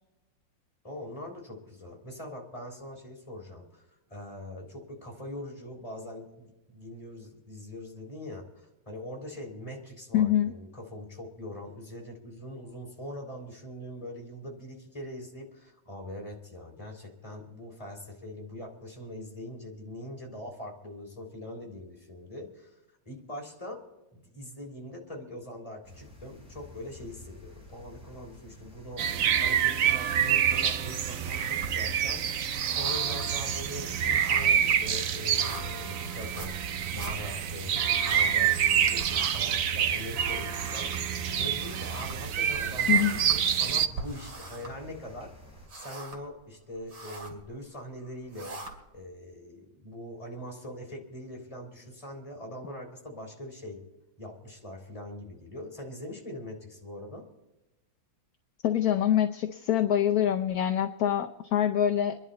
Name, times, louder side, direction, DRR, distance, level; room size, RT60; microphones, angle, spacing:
voice 1, 0.8-3.8 4.1-8.5 8.9-22.7 23.1-23.8 24.1-40.9 41.4-45.3 45.8-48.6 48.9-53.8 54.2-57.3, left 1 dB, 15° left, -1 dB, 3.6 m, -42 dB
voice 2, 10.1-10.5 42.9-43.2 58.6-62.2, left 10 dB, 60° left, 5 dB, 1.1 m, -25 dB
sound 1, 25.8-45.7, left 1 dB, 5° right, 5.3 m, -51 dB
sound 2, 29.0-43.9, right 9 dB, 60° right, 0.9 m, -27 dB
sound 3, 31.0-32.0 32.3-38.7 39.0-45.2 45.5-46.4 46.7-47.4 48.0-49.0, right 2 dB, 85° right, 3.2 m, -43 dB
26.5 x 11.0 x 4.2 m, 0.99 s
omnidirectional pair, 2.0 m